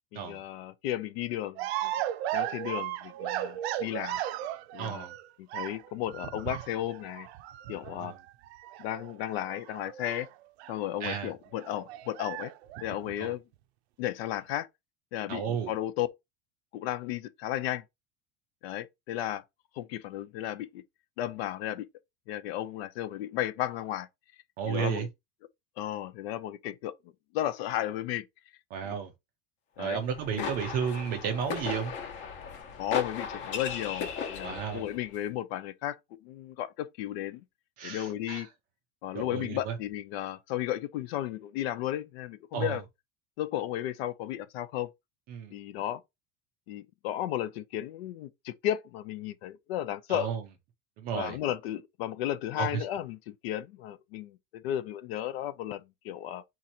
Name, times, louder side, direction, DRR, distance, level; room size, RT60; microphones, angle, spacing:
voice 1, 0.1-1.9 2.3-4.2 4.7-5.0 5.4-7.3 7.7-8.1 8.8-10.3 10.7-12.5 12.8-13.4 14.0-14.7 15.1-16.1 16.7-17.8 18.6-19.4 19.7-20.8 21.2-21.9 22.3-24.1 24.6-25.1 25.8-26.9 27.3-28.3 28.8-29.0 29.8-30.0 30.3-30.5 32.8-37.4 37.8-38.5 39.0-42.8 43.4-44.9 45.5-46.0 46.7-50.3 51.1-56.4, left 12 dB, 70° left, 0.6 m, -34 dB
sound 1, 1.6-5.3 5.5-10.8 11.1-11.2 11.5-13.3, right 13 dB, 75° right, 0.6 m, -36 dB
voice 2, 4.8-5.1 7.9-8.2 11.0-11.3 13.2-13.3 15.3-15.7 24.6-25.1 28.7-29.1 29.8-31.9 34.4-34.8 37.8-38.5 39.1-39.7 42.5-42.8 45.3-45.5 50.1-50.4 51.0-51.4 52.6-52.8, right 7 dB, 30° right, 0.4 m, -33 dB
sound 2, 30.0-35.0, left 6 dB, 35° left, 0.9 m, -37 dB
3.9 x 2.9 x 4.2 m
cardioid pair, 180°, 32 cm